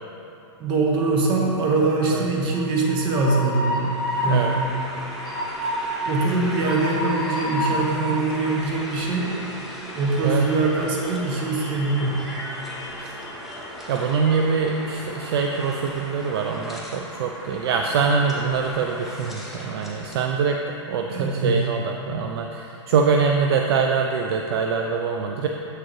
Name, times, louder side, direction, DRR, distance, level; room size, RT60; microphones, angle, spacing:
voice 1, 0.6-4.7 6.0-9.3 9.9-12.2 21.1-21.6, right 3 dB, 30° right, -2 dB, 1.0 m, -23 dB
Train, 2.5-20.3, equal, ahead, 0.8 m, -32 dB
voice 2, 13.9-20.6 20.9-25.5, right 5 dB, 55° right, 2 dB, 0.4 m, -24 dB
7.4 x 6.4 x 3.1 m, 2.9 s
hypercardioid pair, 145°, 16 cm